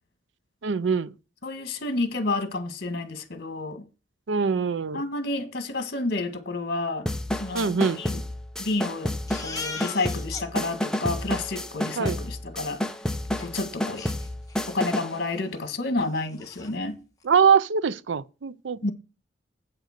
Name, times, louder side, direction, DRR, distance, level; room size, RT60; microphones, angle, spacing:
voice 1, 0.6-1.1 4.3-5.0 7.5-8.0 12.0-12.2 17.2-18.9, right 6 dB, 85° right, 0.5 m, -23 dB
voice 2, 1.4-3.8 4.9-7.1 7.4-8.2 8.6-9.1 9.4-12.8 13.4-14.1 14.7-17.0 18.8-18.9, left 2 dB, 60° left, 1.7 m, -30 dB
sound 1, 7.1-15.2, left 1 dB, 5° left, 0.7 m, -30 dB
Crying sobbing, 9.3-10.5 10.9-11.0 11.2-11.6 13.4-13.5 14.0-14.7 15.1-15.3 15.6-15.7 16.0-16.7, left 5 dB, 20° left, 1.3 m, -39 dB
8.5 x 6.5 x 6.6 m
head